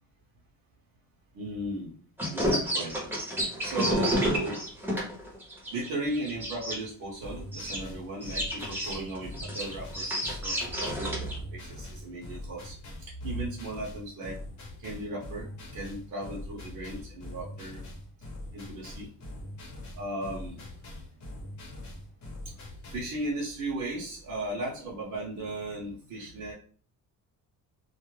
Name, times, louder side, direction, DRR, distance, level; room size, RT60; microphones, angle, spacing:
voice 1, 1.3-1.9 2.3-3.0 3.6-4.6 5.7-11.1 11.5-12.7 13.2-14.4 14.8-17.8 18.5-19.1 20.0-20.6 22.9-26.5, right 2 dB, 55° right, -5 dB, 0.7 m, -36 dB
sound 1, 2.2-6.8 7.5-7.8 8.2-11.3, equal, 5° right, 0.7 m, -30 dB
sound 2, 7.2-23.1, left 1 dB, 55° left, 0.9 m, -43 dB
2.3 x 2.0 x 3.0 m, 0.43 s
cardioid pair, 145°, 36 cm